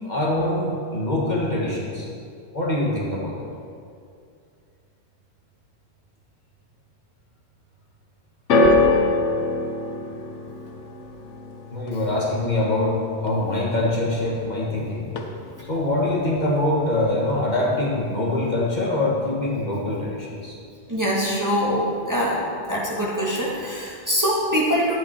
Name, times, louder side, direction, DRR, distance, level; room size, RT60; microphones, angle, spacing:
voice 1, 0.0-2.1 2.5-3.4 11.7-15.1 15.7-20.6, left 1 dB, 40° left, -4 dB, 1.5 m, -24 dB
sound 1, 8.5-14.8 15.0-15.7 16.4-16.5, left 2 dB, 85° left, 1.2 m, -25 dB
voice 2, 20.9-22.4 22.7-25.0, equal, 15° right, -6 dB, 1.8 m, -23 dB
11.5 x 8.3 x 4.5 m, 2.3 s
omnidirectional pair, 1.2 m